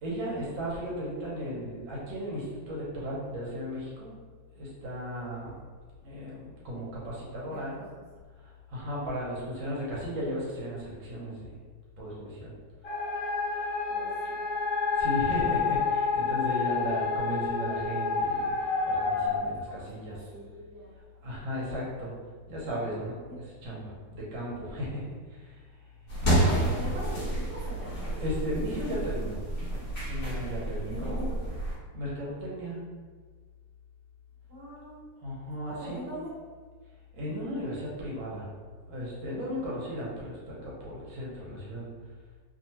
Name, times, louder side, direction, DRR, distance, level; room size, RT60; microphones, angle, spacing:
voice 1, 0.0-4.1 4.5-5.7 6.0-7.8 8.4-11.6 12.0-12.5 15.0-20.3 21.2-22.1 22.5-25.0 25.3-25.6 26.4-26.8 28.1-29.4 30.1-31.3 31.9-32.8 35.2-36.0 37.1-38.5 38.9-41.9, equal, 85° right, -6 dB, 1.7 m, -35 dB
voice 2, 7.5-7.8 13.9-14.4 19.4-20.9 26.2-28.1 30.9-31.4 34.5-35.0 35.7-36.3, right 1 dB, 65° right, -10 dB, 1.6 m, -42 dB
sound 1, 12.8-19.4, left 4 dB, 75° left, 1.1 m, -29 dB
sound 2, 26.1-31.7, right 1 dB, 45° left, 1.3 m, -30 dB
3.3 x 2.3 x 2.8 m, 1.5 s
omnidirectional pair, 2.1 m